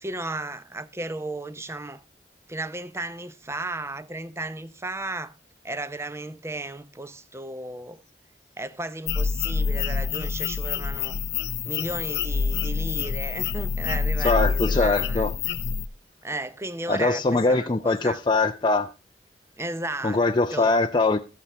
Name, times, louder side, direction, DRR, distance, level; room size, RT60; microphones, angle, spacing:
voice 1, 0.0-2.0 2.5-5.3 5.6-8.0 8.6-11.2 11.7-15.6 16.2-18.2 19.6-20.2 20.5-20.7, right 2 dB, 15° right, 0.7 m, -34 dB
sound 1, 9.1-15.9, left 5 dB, 70° left, 0.6 m, -27 dB
voice 2, 14.2-15.3 16.9-18.9 20.0-21.2, left 3 dB, 25° left, 0.5 m, -22 dB
13.5 x 8.5 x 3.3 m
head